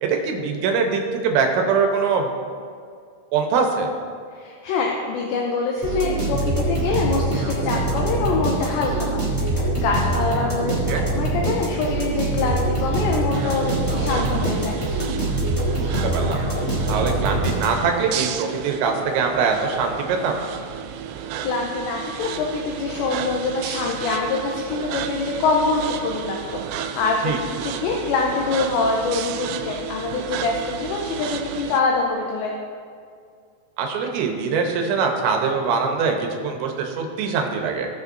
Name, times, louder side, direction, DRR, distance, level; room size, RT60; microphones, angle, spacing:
voice 1, 0.0-2.3 3.3-3.9 10.9-11.0 15.8-16.4 16.9-20.4 27.2-27.4 33.8-37.9, right 5 dB, 75° right, 3 dB, 3.1 m, -23 dB
voice 2, 4.4-10.8 11.1-14.8 21.4-32.5, left 4 dB, 80° left, -1 dB, 2.7 m, -25 dB
sound 1, 5.8-18.0, right 2 dB, 50° left, 0.3 m, -24 dB
sound 2, 13.3-31.8, right 9 dB, 90° right, 2.5 m, -33 dB
19.5 x 7.5 x 2.7 m, 2.2 s
omnidirectional pair, 5.7 m